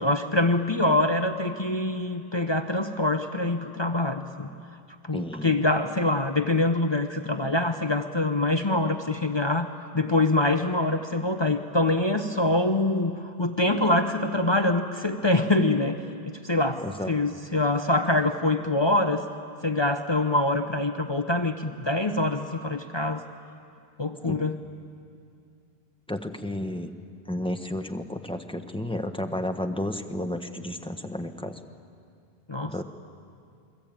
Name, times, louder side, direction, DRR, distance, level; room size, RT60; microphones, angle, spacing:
voice 1, 0.0-4.5 5.0-16.0 16.2-19.2 19.6-23.2 24.0-24.6 32.5-32.8, left 2 dB, 25° left, 6 dB, 1.0 m, -25 dB
voice 2, 5.1-5.6 16.8-17.1 24.3-24.4 26.1-26.9 27.3-31.6 32.6-32.8, left 1 dB, 5° left, 5 dB, 1.2 m, -32 dB
28.5 x 22.5 x 8.9 m, 2.4 s
omnidirectional pair, 1.1 m